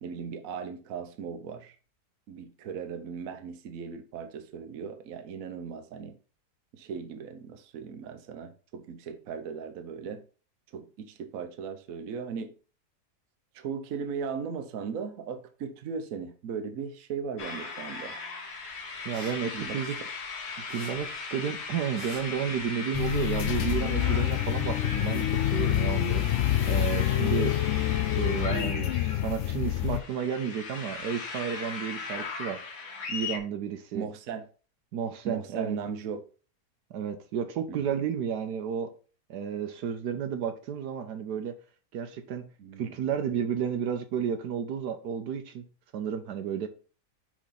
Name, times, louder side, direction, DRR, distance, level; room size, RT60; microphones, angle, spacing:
voice 1, 0.0-1.8 2.3-6.2 6.7-10.2 10.7-12.5 13.5-18.2 19.5-19.8 33.9-34.5 35.2-36.2 37.7-38.0 42.6-43.0, right 6 dB, 60° right, 1.2 m, -37 dB
sound 1, 17.4-33.4, left 4 dB, 70° left, 1.9 m, -38 dB
sound 2, 18.9-20.3 20.7-23.1 23.3-24.9, right 1 dB, 20° right, 1.3 m, -46 dB
voice 2, 19.0-20.0 20.7-26.2 26.7-27.6 28.1-32.6 33.1-34.0 34.9-35.8 36.9-38.9 39.3-41.5 41.9-42.5 42.8-45.7 45.9-46.7, right 8 dB, 80° right, 1.3 m, -32 dB
sound 3, 22.9-30.0, left 12 dB, 85° left, 0.6 m, -27 dB
6.0 x 5.0 x 4.1 m
omnidirectional pair, 1.7 m